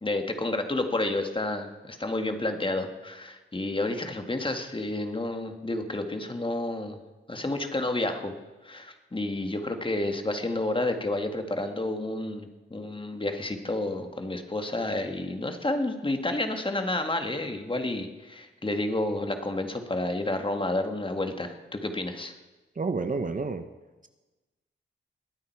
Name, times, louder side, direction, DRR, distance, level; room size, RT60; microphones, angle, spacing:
voice 1, 0.0-7.0 7.3-8.3 8.6-22.3, left 2 dB, 25° left, 5 dB, 1.8 m, -30 dB
voice 2, 22.8-23.7, right 4 dB, 40° right, 9 dB, 1.0 m, -29 dB
20.5 x 9.0 x 4.7 m, 1.1 s
cardioid pair, 60°, 20 cm